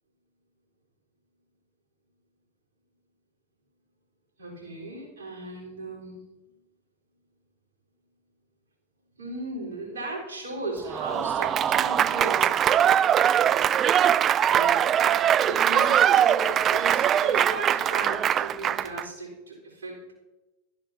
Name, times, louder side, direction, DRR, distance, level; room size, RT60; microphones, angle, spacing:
voice 1, 4.4-6.2 9.2-12.6 14.5-14.9 15.4-20.1, right 2 dB, 80° right, -4 dB, 4.1 m, -36 dB
Applause / Crowd, 10.9-19.0, right 10 dB, 35° right, 0.3 m, -22 dB
15.5 x 12.5 x 2.8 m, 1.0 s
hypercardioid pair, 95°, 0 cm